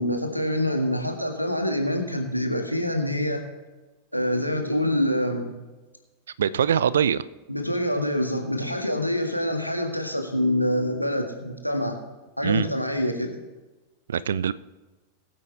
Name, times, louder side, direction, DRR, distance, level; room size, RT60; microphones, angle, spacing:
voice 1, 0.0-3.4 4.1-5.5 7.5-12.0 12.4-13.4, left 1 dB, 90° left, 3 dB, 1.8 m, -26 dB
voice 2, 6.4-7.2 12.4-12.7 14.1-14.5, right 8 dB, 65° right, 18 dB, 0.5 m, -22 dB
21.0 x 8.7 x 3.4 m, 1.2 s
figure-of-eight pair, 90°, 0 cm